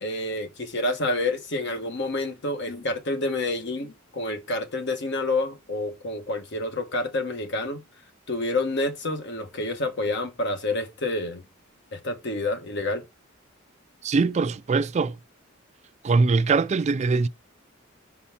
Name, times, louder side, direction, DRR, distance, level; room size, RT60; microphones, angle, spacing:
voice 1, 0.0-7.8 8.3-11.4 11.9-13.0, left 2 dB, 60° left, 1.3 m, -28 dB
voice 2, 14.0-15.2 16.0-17.3, right 4 dB, 35° right, 0.3 m, -22 dB
5.8 x 4.2 x 5.6 m
head